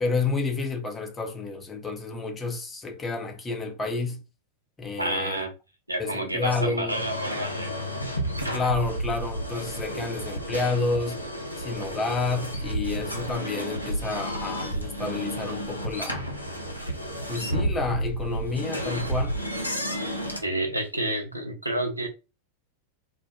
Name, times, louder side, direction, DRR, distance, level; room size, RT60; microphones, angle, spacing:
voice 1, 0.0-4.2 4.8-5.5 6.0-7.0 8.5-11.2 11.6-16.3 17.3-19.4, left 3 dB, 15° left, 0.6 m, -30 dB
voice 2, 5.0-5.5 5.9-7.8 8.5-8.6 9.9-10.1 20.4-22.1, right 1 dB, 85° right, 0.5 m, -29 dB
sound 1, 6.9-20.4, equal, 85° left, 0.5 m, -31 dB
2.2 x 2.1 x 2.9 m
figure-of-eight pair, 90°, 0 cm